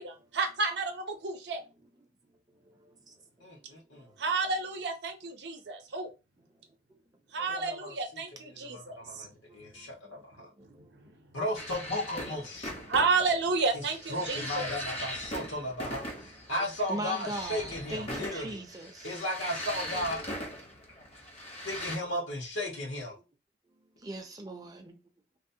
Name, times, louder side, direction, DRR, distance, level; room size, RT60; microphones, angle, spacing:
voice 1, 0.0-1.6 4.2-6.1 7.3-9.3 10.9-11.1 12.9-14.7, right 4 dB, 65° right, 0.6 m, -31 dB
voice 2, 2.6-3.2 3.9-4.2 7.4-7.5 8.6-8.7 9.3-10.9 16.9-19.3 24.0-25.0, right 2 dB, 20° right, 0.5 m, -41 dB
voice 3, 3.4-4.1 7.5-7.9 8.6-10.0 10.2-10.5 11.3-12.7 14.1-18.6 19.0-20.2 21.6-23.2, left 1 dB, 85° left, 1.3 m, -35 dB
sound 1, 11.6-22.0, equal, 30° left, 0.7 m, -40 dB
3.2 x 2.1 x 2.7 m
head